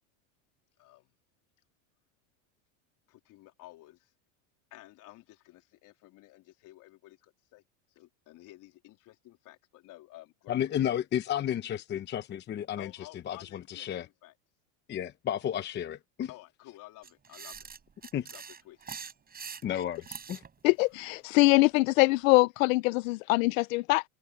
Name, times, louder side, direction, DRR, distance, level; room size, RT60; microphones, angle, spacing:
voice 1, 3.1-4.0 4.7-7.2 7.5-7.6 8.0-10.6 12.8-13.9 14.2-14.3 16.3-17.6 18.3-18.8, left 17 dB, 50° left, 3.6 m, -52 dB
voice 2, 10.5-14.1 14.9-16.3 18.1-18.3 19.6-20.4, left 10 dB, 25° left, 0.8 m, -32 dB
sound 1, 17.0-20.5, right 6 dB, 20° right, 7.8 m, -43 dB
voice 3, 20.6-24.0, left 22 dB, 75° left, 0.7 m, -23 dB
supercardioid pair, 130°, 40 cm